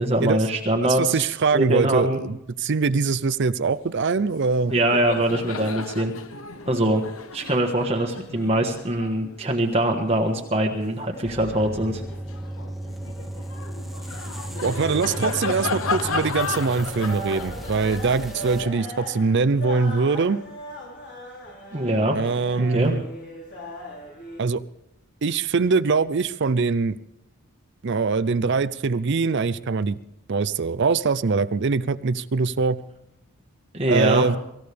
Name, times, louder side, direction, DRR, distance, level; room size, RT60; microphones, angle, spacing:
voice 1, 0.0-1.2 1.5-2.2 4.7-6.1 6.7-7.0 7.3-12.0 21.7-22.2 22.6-22.9 33.7-34.3, right 1 dB, 30° right, 1 dB, 1.3 m, -23 dB
voice 2, 0.8-4.7 14.6-20.4 22.1-23.0 24.4-24.6 25.2-27.0 27.8-30.0 30.3-32.8 33.9-34.4, right 4 dB, 50° right, 15 dB, 0.5 m, -23 dB
Laughter, 4.2-4.4 4.6-11.3 11.8-20.0, left 4 dB, 70° left, 0.9 m, -35 dB
sound 1, 11.2-18.6, right 1 dB, ahead, 0.8 m, -35 dB
sound 2, 14.5-24.4, equal, 55° left, 3.8 m, -39 dB
24.5 x 15.0 x 3.4 m, 0.82 s
head